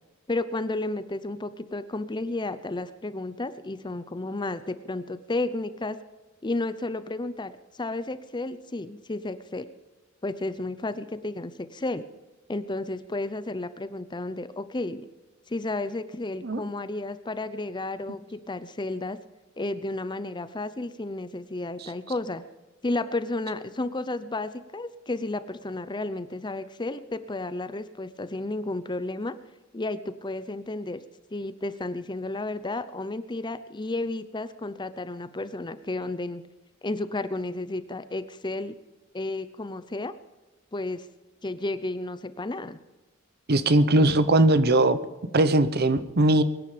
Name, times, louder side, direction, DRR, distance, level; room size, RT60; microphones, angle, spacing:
voice 1, 0.3-6.0 6.4-9.7 10.2-12.0 12.5-15.1 15.5-19.2 19.6-22.4 22.8-29.4 29.7-31.0 31.3-36.4 36.8-38.7 39.1-40.1 40.7-41.0 41.4-42.8, left 2 dB, 20° left, 13 dB, 0.6 m, -32 dB
voice 2, 43.5-45.0 45.3-46.4, right 2 dB, 50° right, 13 dB, 0.9 m, -20 dB
23.0 x 10.0 x 5.1 m, 1.2 s
head